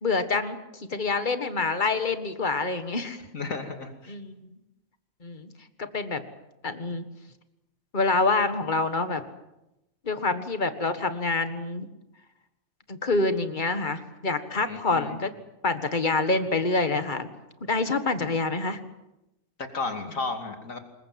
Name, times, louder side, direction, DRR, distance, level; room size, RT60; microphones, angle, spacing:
voice 1, 0.0-3.2 4.1-4.4 5.2-5.5 5.8-6.2 6.6-7.0 7.9-9.2 10.0-11.9 12.9-15.3 15.6-17.3 17.6-18.8, left 3 dB, 35° left, 9 dB, 1.8 m, -26 dB
voice 2, 3.3-4.1 14.6-15.2 19.6-20.8, left 3 dB, 65° left, 5 dB, 3.0 m, -33 dB
26.0 x 22.0 x 7.7 m, 0.94 s
omnidirectional pair, 1.5 m